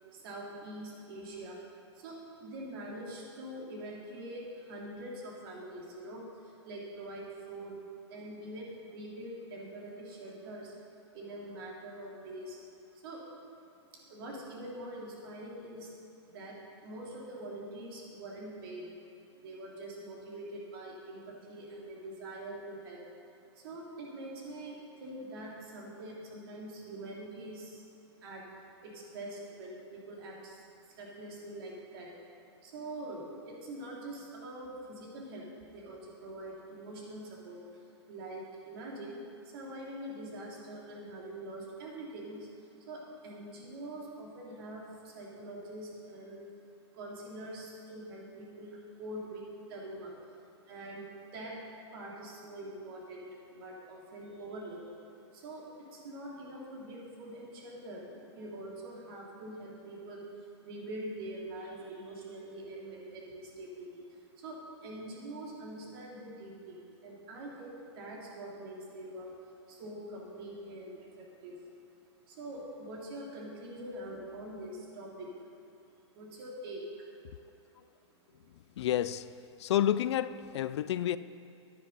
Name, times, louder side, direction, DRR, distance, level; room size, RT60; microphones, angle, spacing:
voice 1, 0.1-7.8 8.1-10.8 11.1-12.6 12.9-13.2 13.8-15.9 16.3-19.0 19.4-23.0 23.5-27.9 28.2-28.5 28.8-32.1 32.6-37.8 38.1-46.5 46.9-51.6 51.9-54.9 55.3-71.8 72.3-75.5 76.1-77.1 77.8-77.9 78.3-78.4, right 1 dB, 55° right, -3 dB, 3.0 m, -44 dB
voice 2, 78.8-79.3 79.6-81.2, left 11 dB, 70° left, 15 dB, 0.4 m, -30 dB
10.0 x 10.0 x 5.4 m, 2.6 s
hypercardioid pair, 150°, 15 cm